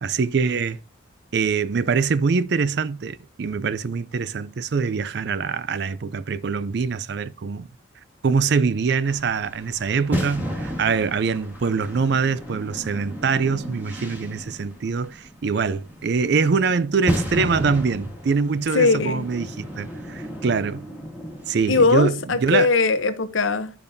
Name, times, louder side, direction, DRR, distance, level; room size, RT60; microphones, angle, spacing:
voice 1, 0.0-0.8 1.3-7.7 8.2-20.8 21.5-22.7, right 5 dB, 55° right, 0.4 m, -24 dB
sound 1, 9.0-21.9, equal, 10° right, 1.6 m, -33 dB
voice 2, 18.7-19.3 21.7-23.7, left 4 dB, 70° left, 0.8 m, -20 dB
12.0 x 5.2 x 2.7 m
head